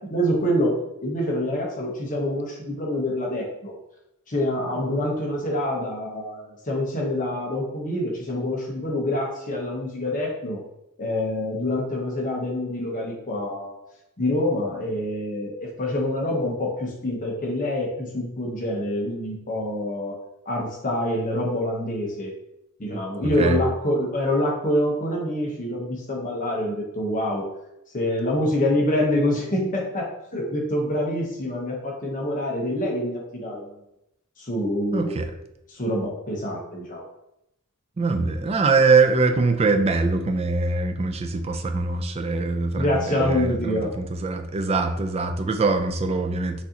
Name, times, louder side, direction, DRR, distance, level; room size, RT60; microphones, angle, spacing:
voice 1, 0.1-3.7 4.3-10.6 11.0-13.8 14.2-20.2 20.5-22.3 22.8-27.5 27.9-33.7 34.4-35.1 35.7-37.0 42.8-43.9, left 1 dB, 40° left, -1 dB, 0.9 m, -26 dB
voice 2, 34.9-35.3 38.0-46.6, right 3 dB, 30° right, 6 dB, 0.4 m, -23 dB
6.1 x 2.7 x 2.8 m, 0.84 s
head